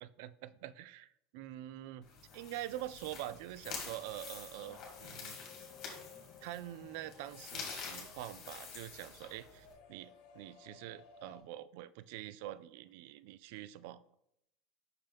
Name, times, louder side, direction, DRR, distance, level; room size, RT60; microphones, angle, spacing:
voice 1, 0.0-2.1 2.3-5.4 6.4-14.1, right 13 dB, 70° right, 16 dB, 0.3 m, -45 dB
sound 1, 2.0-9.7, left 5 dB, 45° left, 2.1 m, -48 dB
sound 2, 4.6-11.4, left 6 dB, 70° left, 1.2 m, -58 dB
5.7 x 5.4 x 3.4 m, 0.79 s
supercardioid pair, 125°, 0 cm